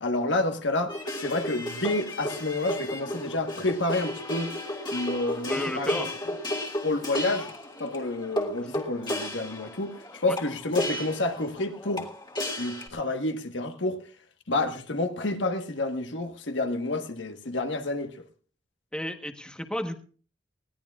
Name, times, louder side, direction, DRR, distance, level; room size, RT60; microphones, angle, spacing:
voice 1, 0.0-0.9 1.2-4.5 4.9-6.0 6.3-6.4 6.8-7.5 7.8-12.1 12.6-14.0 14.5-18.2, left 2 dB, 70° left, 1.3 m, -29 dB
sound 1, 0.9-12.9, left 1 dB, 25° left, 1.9 m, -33 dB
voice 2, 5.5-6.1 10.3-10.4 18.9-20.0, left 1 dB, 5° left, 1.1 m, -32 dB
20.5 x 16.5 x 2.4 m
head